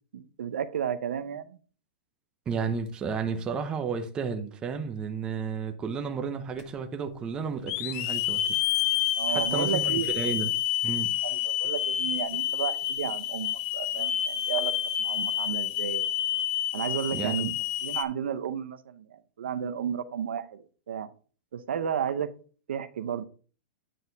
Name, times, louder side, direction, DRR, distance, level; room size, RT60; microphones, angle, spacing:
voice 1, 0.1-1.6 9.2-10.4 11.2-14.7 15.0-16.1 16.7-17.5 17.8-21.1 21.5-22.3 22.7-23.2, right 8 dB, 90° right, 0.7 m, -33 dB
voice 2, 2.5-8.6 9.3-10.5 10.8-11.1 17.1-17.5, right 5 dB, 15° right, 0.7 m, -32 dB
Hiss / Alarm, 6.6-6.7 7.7-18.0, left 11 dB, 35° left, 0.5 m, -29 dB
9.2 x 4.2 x 3.9 m
supercardioid pair, 165°, 6 cm